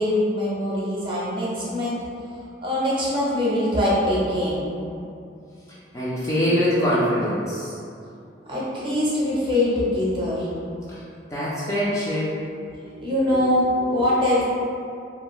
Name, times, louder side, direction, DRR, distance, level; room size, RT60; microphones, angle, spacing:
voice 1, 0.0-2.0 2.6-4.7 8.5-10.5 12.7-14.4, left 1 dB, 25° right, -8 dB, 0.7 m, -23 dB
voice 2, 5.9-7.7 10.9-11.0 11.3-12.3, equal, 15° left, -9 dB, 0.3 m, -23 dB
2.5 x 2.3 x 3.0 m, 2.5 s
head